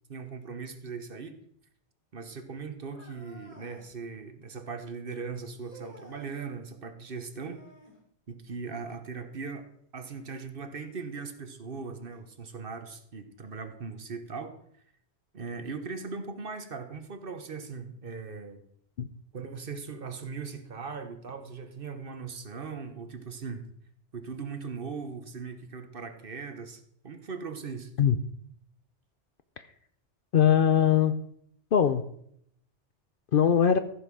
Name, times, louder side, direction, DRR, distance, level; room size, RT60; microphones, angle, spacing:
voice 1, 0.1-1.4 2.1-7.6 8.3-9.7 9.9-14.5 15.3-18.6 19.3-23.7 24.1-27.9, right 5 dB, 50° right, 8 dB, 1.2 m, -39 dB
sound 1, 2.9-3.9 5.6-6.3 7.3-8.0 10.1-10.2 11.0-11.1 12.1-12.2, equal, 30° left, 3.4 m, -52 dB
voice 2, 30.3-31.1 31.7-32.0 33.3-33.8, left 8 dB, 55° left, 11 dB, 0.8 m, -21 dB
14.5 x 5.7 x 6.2 m, 0.69 s
omnidirectional pair, 1.2 m